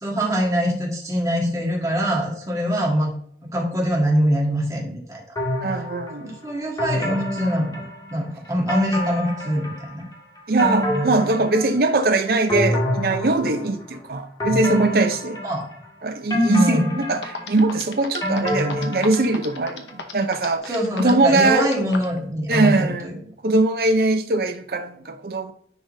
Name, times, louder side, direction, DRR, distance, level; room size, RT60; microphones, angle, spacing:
voice 1, 0.0-3.1 3.5-5.2 6.2-7.8 8.1-10.0 15.4-15.7 16.4-16.9 20.6-23.2, equal, 20° right, 1.6 m, -23 dB
sound 1, 5.4-6.2 6.8-8.2 8.7-10.0 10.4-12.0 12.5-13.8 14.4-15.8 16.3-19.6 19.9-20.0, left 1 dB, 20° left, 1.8 m, -26 dB
voice 2, 5.6-6.3 10.5-15.4 16.0-20.7 21.0-21.7 22.5-23.1 23.4-25.5, right 2 dB, 55° right, 0.6 m, -21 dB
sound 2, 16.9-17.0 17.2-22.2, left 4 dB, 85° left, 0.9 m, -34 dB
10.0 x 3.8 x 2.7 m
head